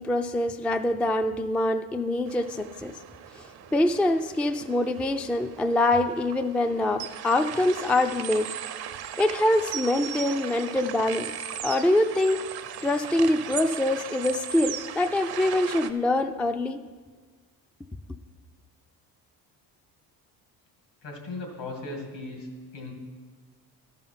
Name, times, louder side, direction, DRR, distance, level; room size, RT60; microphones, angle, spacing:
voice 1, 0.0-2.9 3.7-8.5 9.2-11.3 11.6-12.4 12.8-16.8, left 1 dB, 5° left, 7 dB, 0.3 m, -24 dB
sound 1, 2.3-15.9, right 9 dB, 60° right, 0.7 m, -38 dB
voice 2, 21.0-22.9, left 2 dB, 75° left, 2 dB, 2.5 m, -37 dB
13.0 x 5.7 x 5.7 m, 1.5 s
supercardioid pair, 75°, 42 cm